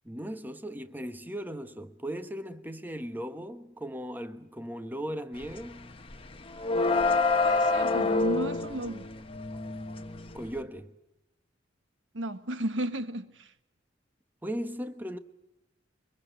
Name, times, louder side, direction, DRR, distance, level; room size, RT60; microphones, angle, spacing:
voice 1, 0.0-5.9 10.3-10.9 14.4-15.2, equal, 10° right, 1.2 m, -37 dB
sound 1, 5.4-5.7 5.9-10.6, left 3 dB, 30° left, 1.4 m, -27 dB
voice 2, 6.8-9.1 12.1-13.5, right 1 dB, 85° right, 1.5 m, -34 dB
24.0 x 22.0 x 8.0 m
head